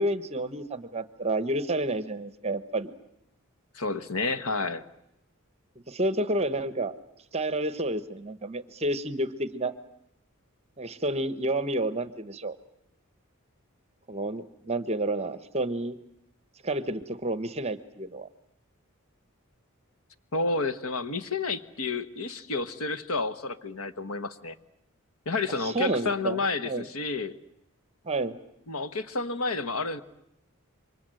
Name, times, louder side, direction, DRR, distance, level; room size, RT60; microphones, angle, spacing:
voice 1, 0.0-2.9 5.9-6.9 7.3-9.7 10.8-12.6 14.1-16.0 16.6-18.3 25.6-26.9 28.0-28.4, right 1 dB, 30° right, 12 dB, 0.9 m, -30 dB
voice 2, 3.7-4.8 20.3-24.5 25.2-27.3 28.7-30.0, left 3 dB, 80° left, 11 dB, 1.3 m, -30 dB
28.0 x 24.5 x 7.7 m, 0.79 s
head